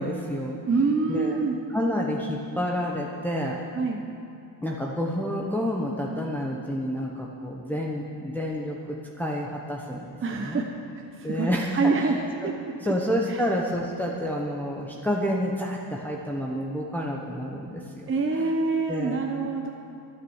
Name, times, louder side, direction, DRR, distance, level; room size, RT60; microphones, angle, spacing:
voice 1, 0.0-1.4 1.7-3.6 4.6-10.1 10.4-10.6 11.2-12.1 12.4-12.5 12.8-18.1 18.3-18.5 18.9-19.2, equal, 5° left, -2 dB, 1.0 m, -29 dB
voice 2, 0.7-1.6 3.7-4.0 10.2-10.7 11.1-12.2 12.4-12.5 12.8-12.9 13.3-13.4 18.1-19.7, right 4 dB, 30° right, 2 dB, 0.9 m, -25 dB
12.5 x 9.5 x 7.2 m, 2.5 s
cardioid pair, 110°, 45 cm